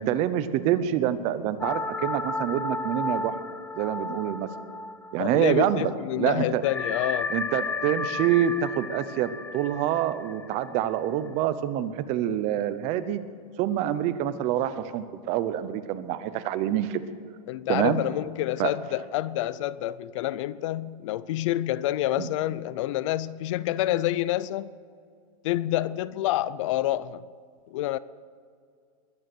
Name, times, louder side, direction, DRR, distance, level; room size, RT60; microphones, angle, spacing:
voice 1, 0.0-3.3 3.8-4.5 5.1-6.6 7.3-13.2 13.6-17.0 17.7-18.0 18.6-18.7 22.2-22.3, right 11 dB, 35° right, 0.9 m, -26 dB
sound 1, 1.6-5.6 5.9-6.0 6.6-11.3, left 3 dB, 10° left, 0.6 m, -33 dB
voice 2, 5.2-7.3 17.5-24.7 25.4-27.2 27.7-28.0, left 14 dB, 55° left, 0.5 m, -28 dB
22.0 x 9.5 x 6.2 m
supercardioid pair, 160°, 19 cm